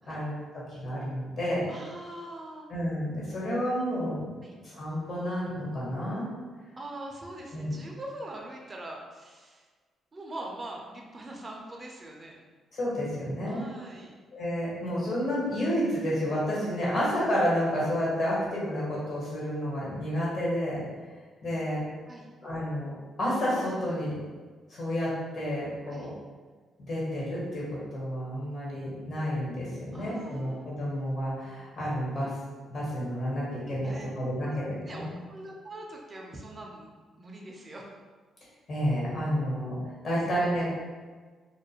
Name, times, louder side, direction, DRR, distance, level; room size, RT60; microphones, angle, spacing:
voice 1, 0.1-1.7 2.7-4.3 4.6-6.3 7.5-7.8 12.7-13.6 14.3-20.9 21.4-21.8 22.4-22.9 23.2-24.1 24.7-26.1 26.9-32.3 32.7-35.1 38.7-39.8 40.0-40.8, equal, 55° left, -7 dB, 1.3 m, -30 dB
voice 2, 1.7-2.7 4.4-4.5 6.8-9.7 10.1-12.4 13.5-14.1 22.1-22.3 25.9-26.1 29.9-30.7 33.8-34.1 34.4-37.9 40.4-40.5, right 1 dB, 25° right, -1 dB, 0.4 m, -43 dB
2.3 x 2.1 x 2.9 m, 1.4 s
cardioid pair, 90°, 0 cm